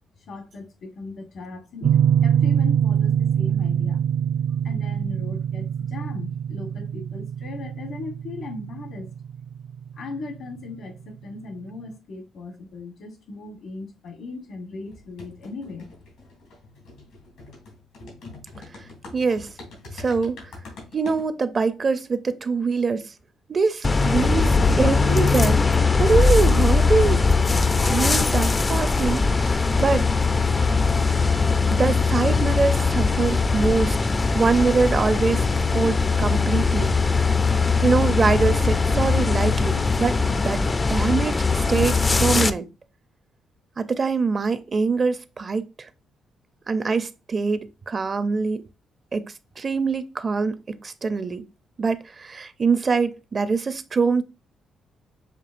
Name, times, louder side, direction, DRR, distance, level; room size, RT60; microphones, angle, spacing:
voice 1, 0.3-4.0 4.6-9.1 10.0-15.9, left 3 dB, 70° left, 1.2 m, -38 dB
sound 1, 1.8-10.5, right 9 dB, 70° right, 0.7 m, -24 dB
sound 2, 14.8-21.3, left 3 dB, 85° left, 2.5 m, -43 dB
voice 2, 19.1-19.5 19.9-20.4 20.9-23.1 23.5-25.6 26.0-27.2 27.9-30.1 31.7-35.5 35.7-37.0 37.8-40.6 40.9-42.7 43.8-45.9 46.7-48.6 49.1-51.4 51.8-54.2, right 4 dB, 40° right, 0.5 m, -24 dB
sound 3, 23.8-42.5, left 4 dB, 25° left, 0.3 m, -20 dB
6.7 x 2.7 x 2.5 m
cardioid pair, 90°, 0 cm